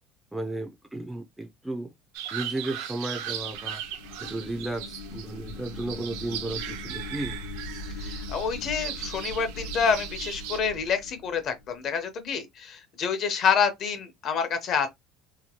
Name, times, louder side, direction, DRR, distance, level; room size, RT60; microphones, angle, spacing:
voice 1, 0.3-1.9 2.3-3.8 4.2-7.4, right 2 dB, 5° right, 0.4 m, -34 dB
sound 1, 2.1-10.6, right 10 dB, 85° right, 0.5 m, -38 dB
sound 2, 2.8-12.0, left 2 dB, 85° left, 1.0 m, -41 dB
voice 2, 8.0-14.9, left 6 dB, 40° left, 0.7 m, -27 dB
2.8 x 2.3 x 2.8 m
cardioid pair, 160°, 0 cm